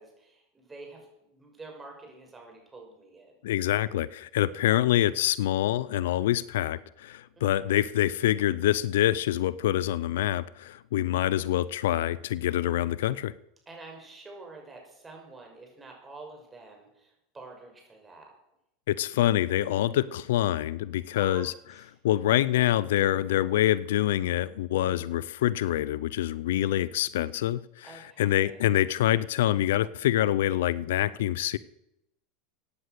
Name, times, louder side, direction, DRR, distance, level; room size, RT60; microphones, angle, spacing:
voice 1, 0.0-3.5 4.5-4.8 7.3-7.7 13.7-18.3 21.1-21.9 27.8-28.6, right 3 dB, 15° right, 1 dB, 5.9 m, -48 dB
voice 2, 3.4-13.3 18.9-21.5 22.0-27.9 28.2-31.6, left 13 dB, 80° left, 19 dB, 0.6 m, -26 dB
15.5 x 9.8 x 6.7 m, 0.83 s
supercardioid pair, 115°, 0 cm